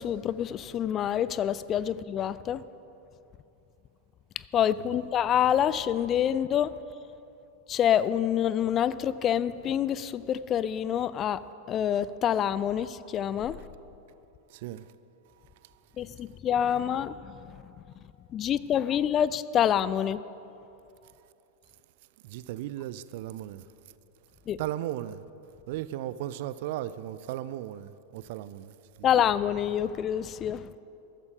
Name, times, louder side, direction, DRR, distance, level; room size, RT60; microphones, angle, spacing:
voice 1, 0.0-2.6 4.5-6.7 7.7-11.4 11.7-13.6 16.0-17.7 18.3-20.2 24.5-24.6 29.0-30.7, left 9 dB, 30° left, 0.4 m, -27 dB
voice 2, 14.5-14.9 21.0-21.1 22.2-23.7 24.6-25.2 25.7-29.1, right 13 dB, 50° right, 0.4 m, -36 dB
14.0 x 13.5 x 5.0 m
figure-of-eight pair, 90°, 0 cm